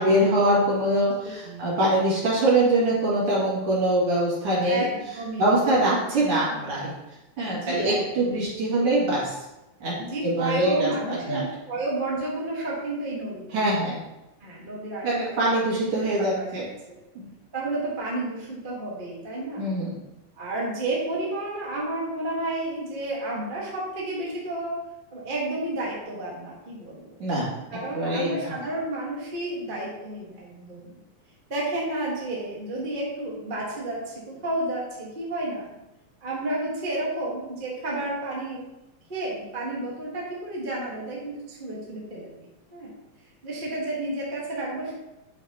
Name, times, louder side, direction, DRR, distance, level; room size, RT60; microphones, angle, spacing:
voice 1, 0.0-4.8 5.4-6.9 7.4-9.3 9.8-9.9 10.2-11.4 13.5-14.0 15.0-16.6 17.1-17.3 19.6-19.9 27.2-27.5 27.9-28.3, right 1 dB, 50° right, -7 dB, 3.0 m, -23 dB
voice 2, 1.2-1.7 4.7-5.6 7.5-8.5 10.0-13.6 14.4-15.3 16.2-16.6 17.5-19.6 20.4-24.8 25.1-27.2 27.7-31.0 31.5-35.6 36.2-38.7 39.1-42.4 42.7-42.9 43.4-44.9, right 2 dB, 30° right, -5 dB, 1.0 m, -31 dB
8.0 x 5.9 x 2.9 m, 0.97 s
omnidirectional pair, 3.4 m